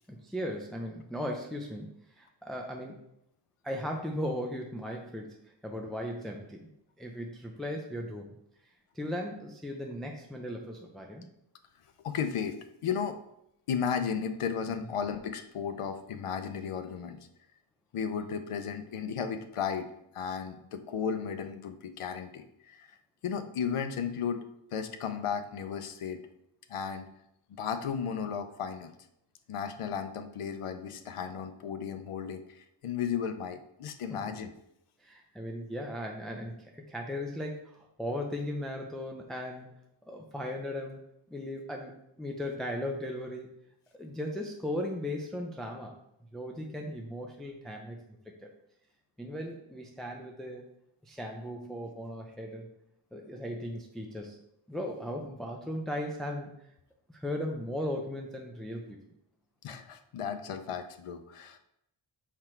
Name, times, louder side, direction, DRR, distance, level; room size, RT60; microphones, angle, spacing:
voice 1, 0.1-3.0 3.6-5.4 5.6-6.7 7.0-8.4 8.9-11.3 34.1-34.2 35.0-39.7 40.0-41.0 41.3-43.5 44.0-45.9 46.3-48.0 48.3-48.5 49.2-50.7 51.0-52.7 53.1-54.4 54.7-56.7 57.1-59.0, left 1 dB, ahead, 1 dB, 0.5 m, -37 dB
voice 2, 12.0-13.2 13.7-17.2 17.9-19.9 20.1-23.0 23.2-24.4 24.7-26.2 26.7-27.1 27.6-28.9 29.5-34.5 59.6-61.6, left 7 dB, 90° left, 8 dB, 0.8 m, -34 dB
5.9 x 4.8 x 4.4 m, 0.78 s
wide cardioid pair, 160°, 50 cm